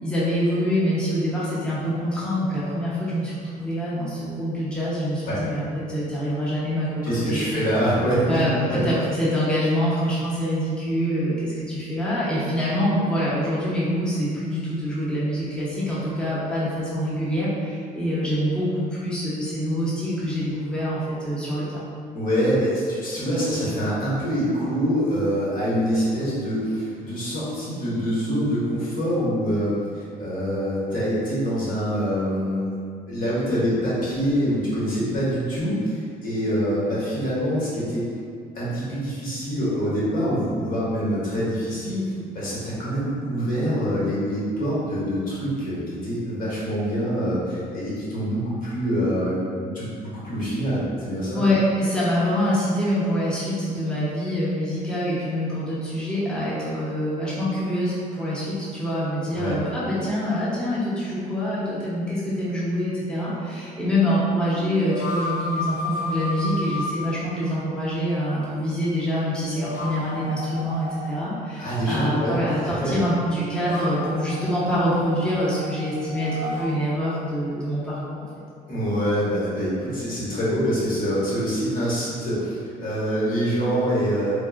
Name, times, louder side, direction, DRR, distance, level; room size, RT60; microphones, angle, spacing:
voice 1, 0.0-7.7 8.3-21.9 51.3-78.3, equal, 5° left, -10 dB, 0.8 m, -25 dB
voice 2, 7.0-8.4 8.7-8.8 22.1-32.8 33.1-38.1 38.5-51.4 59.3-59.6 71.6-72.4 72.6-72.9 78.7-84.3, equal, 55° left, -8 dB, 1.2 m, -25 dB
sound 1, 64.5-66.9 69.3-71.1 73.2-76.8, left 2 dB, 75° left, 0.7 m, -33 dB
3.7 x 2.3 x 2.4 m, 2.2 s
cardioid pair, 110°, 17 cm